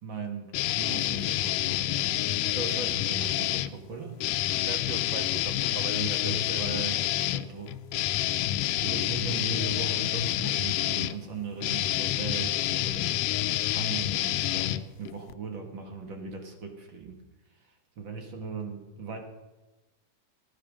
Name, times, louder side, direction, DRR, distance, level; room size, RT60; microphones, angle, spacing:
voice 1, 0.0-4.6 5.9-7.8 8.7-13.2 13.7-17.2 17.5-19.2, right 4 dB, 45° right, 4 dB, 1.9 m, -38 dB
sound 1, 0.5-3.7 4.2-15.3, left 14 dB, 90° left, 2.2 m, -28 dB
voice 2, 4.6-6.9, right 8 dB, 90° right, 12 dB, 2.4 m, -40 dB
15.5 x 10.0 x 6.2 m, 1.1 s
omnidirectional pair, 3.6 m